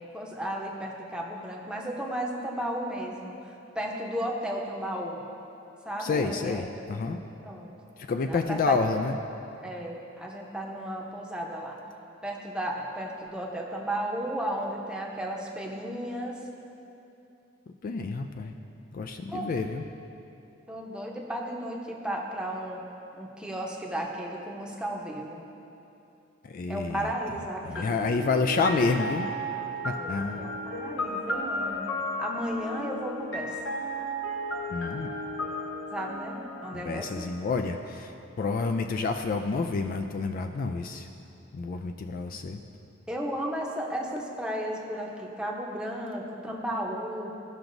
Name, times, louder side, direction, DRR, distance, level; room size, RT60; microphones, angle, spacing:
voice 1, 0.1-3.3 3.7-5.2 5.8-6.6 7.4-7.7 8.3-8.8 9.6-11.8 12.2-16.4 19.3-19.6 20.7-22.8 23.1-25.4 26.7-27.9 30.0-31.9 32.2-33.6 35.9-37.3 43.1-47.3, right 1 dB, 5° right, -2 dB, 0.8 m, -34 dB
voice 2, 6.0-7.2 8.0-9.2 17.8-18.5 18.9-19.8 26.4-27.1 27.6-29.3 29.8-30.5 34.7-35.1 36.7-41.1 41.5-42.6, left 4 dB, 45° left, 5 dB, 0.3 m, -29 dB
sound 1, 27.7-37.5, equal, 80° left, 1.0 m, -34 dB
15.0 x 5.9 x 2.6 m, 2.8 s
head